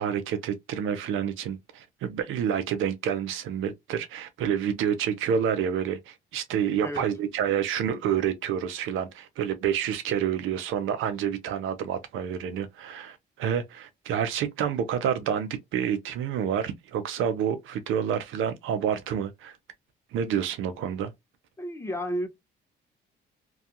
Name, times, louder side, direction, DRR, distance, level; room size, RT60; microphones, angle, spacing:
voice 1, 0.0-19.6 20.1-21.1, right 8 dB, 85° right, 0.5 m, -28 dB
voice 2, 21.6-22.3, equal, 15° left, 0.8 m, -31 dB
2.4 x 2.3 x 2.7 m
cardioid pair, 90°, 20 cm